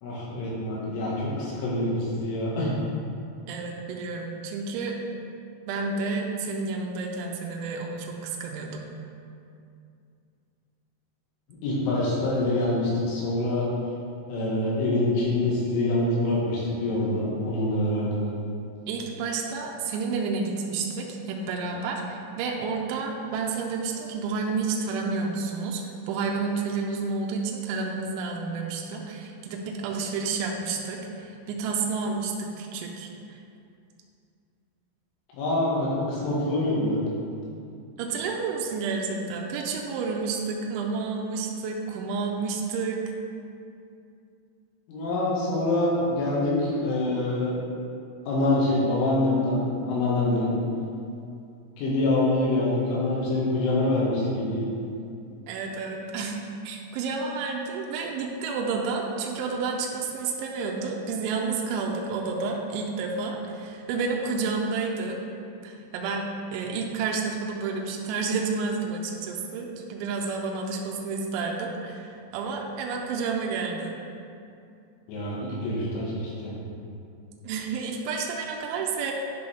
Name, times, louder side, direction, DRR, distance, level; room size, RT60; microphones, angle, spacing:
voice 1, 0.0-2.7 11.6-13.7 14.3-18.2 35.3-37.0 44.9-47.6 48.3-50.5 51.8-54.7 75.1-76.5, left 2 dB, 90° left, -6 dB, 4.1 m, -25 dB
voice 2, 3.5-5.0 5.7-8.9 18.9-33.1 38.0-43.0 55.5-56.4 56.6-65.2 65.6-73.9 77.4-79.1, right 4 dB, 85° right, 0 dB, 3.0 m, -30 dB
10.5 x 5.4 x 3.4 m, 2.5 s
omnidirectional pair, 5.5 m